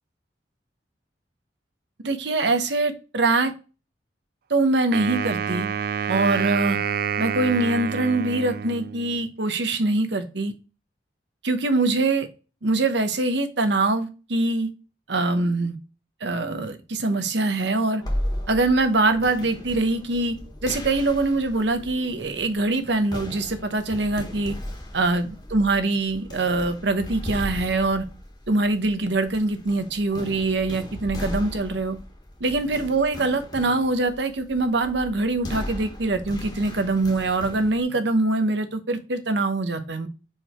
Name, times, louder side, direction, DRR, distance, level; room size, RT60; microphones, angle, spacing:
voice 1, 2.0-3.5 4.5-5.7 6.1-6.8 7.2-10.5 11.4-12.3 12.6-14.7 15.1-15.8 16.2-18.0 18.5-24.5 24.9-28.0 28.5-32.0 32.4-40.1, right 2 dB, 70° right, 8 dB, 1.0 m, -23 dB
Wind instrument woodwind instrument, 4.9-9.2, right 7 dB, 55° right, 0.3 m, -28 dB
sound 1, 18.0-37.8, left 1 dB, 25° left, 1.4 m, -36 dB
4.8 x 4.8 x 4.3 m, 0.33 s
head